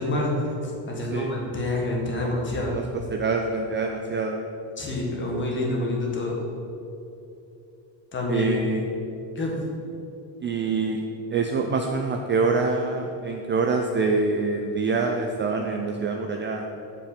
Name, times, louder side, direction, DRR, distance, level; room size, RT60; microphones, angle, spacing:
voice 1, 0.0-2.8 4.8-6.4 8.1-8.5 9.3-9.6, left 2 dB, 25° left, -1 dB, 1.6 m, -27 dB
voice 2, 3.1-4.4 8.3-8.8 10.4-11.0 11.3-16.6, right 4 dB, 30° right, 3 dB, 0.4 m, -25 dB
7.7 x 5.3 x 6.7 m, 2.8 s
cardioid pair, 160°, 43 cm